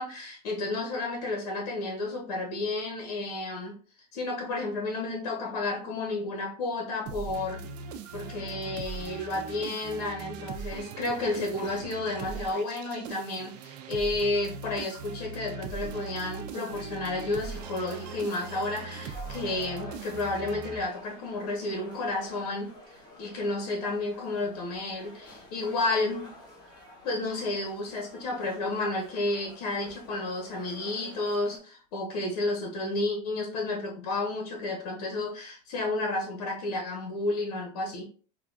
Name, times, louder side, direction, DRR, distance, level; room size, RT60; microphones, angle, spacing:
voice 1, 0.0-3.7 4.1-7.6 8.1-26.3 27.0-38.0, left 2 dB, 80° left, 0 dB, 1.1 m, -31 dB
sound 1, 7.1-21.3, right 5 dB, 90° right, 0.5 m, -40 dB
sound 2, 17.3-31.6, left 2 dB, 20° left, 1.4 m, -49 dB
4.9 x 2.3 x 2.4 m, 0.41 s
supercardioid pair, 125°, 20 cm